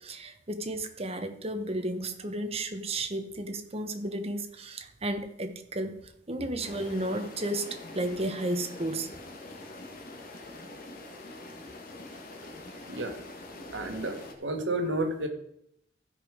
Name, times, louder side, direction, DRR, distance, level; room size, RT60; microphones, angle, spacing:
voice 1, 0.0-6.0 6.3-9.1, right 1 dB, 35° right, 7 dB, 1.1 m, -33 dB
sound 1, 6.6-14.3, left 2 dB, 50° left, 1.7 m, -44 dB
voice 2, 13.7-15.3, right 1 dB, 75° right, 4 dB, 1.7 m, -31 dB
15.0 x 5.4 x 5.1 m, 0.74 s
head